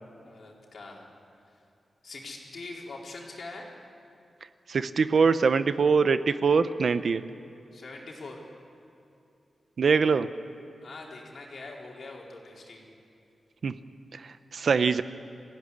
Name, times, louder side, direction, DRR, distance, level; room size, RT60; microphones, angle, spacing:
voice 1, 0.2-1.1 2.0-3.7 7.7-8.4 10.8-12.8, left 3 dB, 55° left, -2 dB, 4.3 m, -43 dB
voice 2, 4.7-7.2 9.8-10.3 13.6-13.7 14.1-15.0, right 5 dB, 55° right, 12 dB, 0.7 m, -23 dB
26.0 x 16.0 x 10.0 m, 2.7 s
wide cardioid pair, 165°, 0 cm